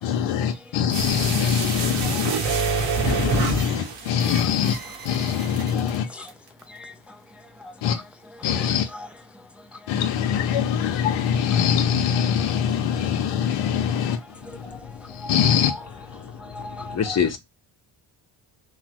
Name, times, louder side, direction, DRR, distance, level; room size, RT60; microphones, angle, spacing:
voice 1, 0.0-2.3 3.0-4.8 5.0-6.1 7.8-8.0 8.4-8.9 9.9-14.2 14.5-14.8 15.1-15.8, left 8 dB, 70° left, 0.6 m, -23 dB
sound 1, 0.9-5.9 6.3-6.4, right 4 dB, 85° right, 1.1 m, -27 dB
voice 2, 2.0-2.6 5.7-6.3 6.7-7.7 8.6-8.7 8.9-9.1 9.3-9.9 13.0-13.1 14.1-14.2 14.5-15.3 15.7-15.8 16.2-17.2, left 2 dB, 5° right, 0.4 m, -41 dB
voice 3, 14.6-15.3 16.2-17.4, left 7 dB, 35° left, 0.8 m, -28 dB
3.0 x 2.0 x 2.8 m
supercardioid pair, 70°, 49 cm